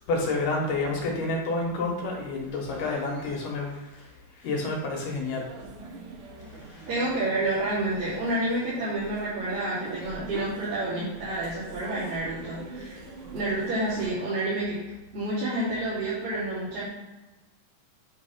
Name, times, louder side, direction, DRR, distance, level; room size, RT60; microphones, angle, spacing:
voice 1, 0.1-4.1 4.4-5.4 6.7-7.1, left 2 dB, 85° left, -1 dB, 3.1 m, -29 dB
sound 1, 5.3-14.1, right 3 dB, 65° right, 1.4 m, -43 dB
voice 2, 6.9-13.0 13.3-14.8 15.1-16.8, right 1 dB, 90° right, -14 dB, 4.3 m, -29 dB
9.5 x 3.4 x 5.5 m, 1.1 s
omnidirectional pair, 3.7 m